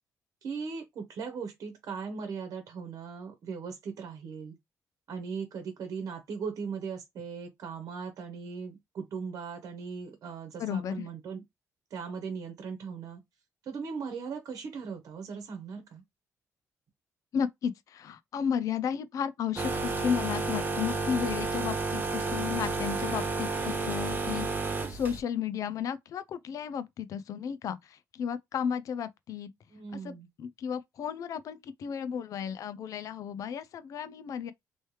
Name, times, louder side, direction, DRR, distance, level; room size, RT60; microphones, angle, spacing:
voice 1, 0.4-4.6 5.1-11.4 11.9-13.2 13.6-16.0 29.7-30.3, right 5 dB, 70° right, 1.0 m, -38 dB
voice 2, 10.6-11.0 17.3-29.5 29.9-34.5, left 8 dB, 60° left, 0.4 m, -33 dB
sound 1, 19.6-25.2, right 3 dB, 30° right, 0.8 m, -31 dB
3.1 x 3.0 x 3.1 m
cardioid pair, 105°, 6 cm